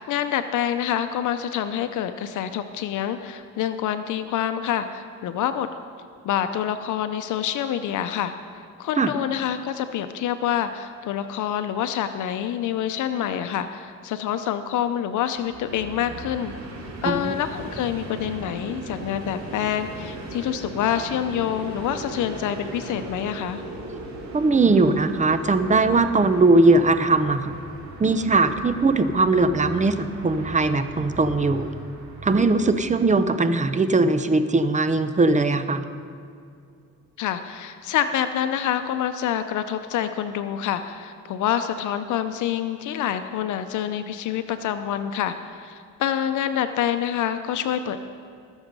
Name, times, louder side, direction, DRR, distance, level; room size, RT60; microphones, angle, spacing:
voice 1, 0.0-5.7 6.2-8.3 8.8-16.5 17.0-23.6 37.2-48.0, left 10 dB, 80° left, 9 dB, 0.7 m, -27 dB
Train, 15.3-33.4, right 2 dB, 70° right, 2.9 m, -38 dB
voice 2, 17.0-17.3 24.3-27.5 28.0-31.7 32.2-35.8, right 3 dB, 25° right, 10 dB, 0.9 m, -20 dB
20.5 x 7.2 x 5.4 m, 2.3 s
cardioid pair, 90°, 30 cm